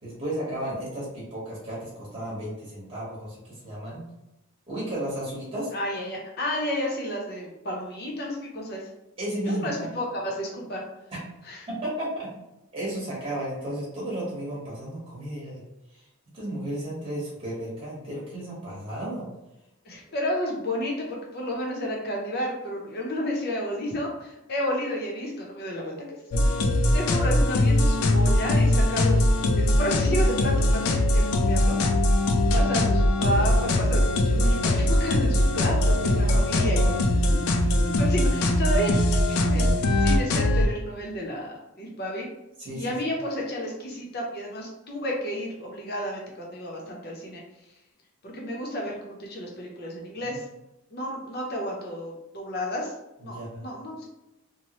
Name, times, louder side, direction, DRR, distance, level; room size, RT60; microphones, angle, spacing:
voice 1, 0.0-4.0 4.7-5.7 9.2-9.7 11.7-12.3 12.7-15.6 15.9-16.0 16.3-19.3 37.5-38.0 42.6-43.0 50.2-50.4 53.2-53.6, right 1 dB, 25° right, -7 dB, 1.0 m, -33 dB
voice 2, 5.7-8.8 9.4-10.8 11.4-11.6 19.8-26.0 26.5-32.0 32.5-36.9 37.3-42.3 42.7-47.4 48.2-50.4 50.9-52.9 53.2-54.0, equal, 45° left, -1 dB, 0.6 m, -31 dB
sound 1, 26.3-40.7, left 1 dB, 80° left, 0.4 m, -21 dB
3.0 x 2.0 x 2.9 m, 0.92 s
head